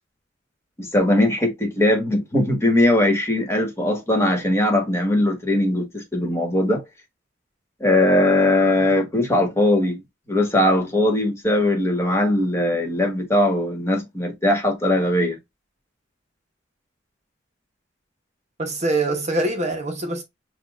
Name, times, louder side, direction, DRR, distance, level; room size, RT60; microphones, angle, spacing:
voice 1, 0.8-6.8 7.8-10.0 10.3-15.4, left 1 dB, 15° left, 1.3 m, -20 dB
voice 2, 18.6-20.2, right 2 dB, 35° right, 0.8 m, -24 dB
6.8 x 2.3 x 2.4 m
head